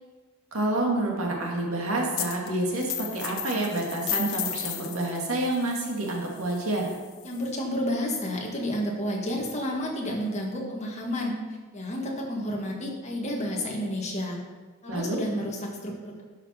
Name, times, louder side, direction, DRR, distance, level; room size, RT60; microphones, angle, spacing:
voice 1, 0.5-6.9 14.9-15.2, right 2 dB, 80° right, -1 dB, 2.1 m, -28 dB
sound 1, 2.2-2.5 2.8-7.5, left 10 dB, 85° left, 1.0 m, -35 dB
voice 2, 7.2-11.3 11.7-14.4 14.8-16.2, left 1 dB, 35° left, -2 dB, 1.8 m, -30 dB
11.0 x 6.0 x 4.4 m, 1.4 s
head